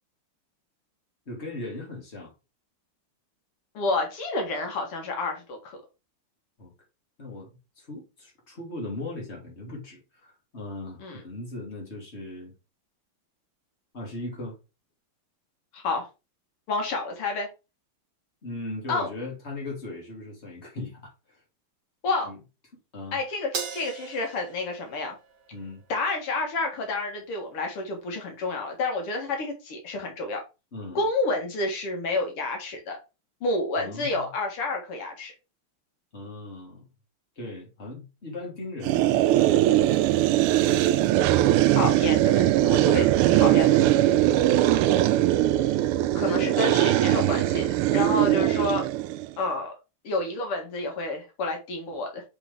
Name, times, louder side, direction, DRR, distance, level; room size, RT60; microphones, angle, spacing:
voice 1, 1.3-2.3 6.6-6.7 7.2-7.5 7.8-12.5 13.9-14.6 18.4-21.4 22.2-22.4 22.9-23.2 25.5-25.8 30.7-31.0 33.8-34.3 36.1-36.8 37.4-40.1 44.5-45.3 48.1-48.5, left 2 dB, 30° left, 2.9 m, -38 dB
voice 2, 3.7-5.8 11.0-11.2 15.7-16.1 16.7-17.5 18.9-19.1 22.0-22.3 23.1-25.2 25.9-30.4 31.0-33.0 33.4-35.3 41.6-44.0 46.1-48.8 49.4-49.7 50.0-52.2, left 2 dB, 85° left, 2.6 m, -29 dB
Crash cymbal, 23.5-26.1, right 6 dB, 55° right, 1.6 m, -38 dB
sound 1, 38.8-49.3, right 14 dB, 85° right, 1.5 m, -21 dB
6.8 x 5.0 x 3.5 m
omnidirectional pair, 2.4 m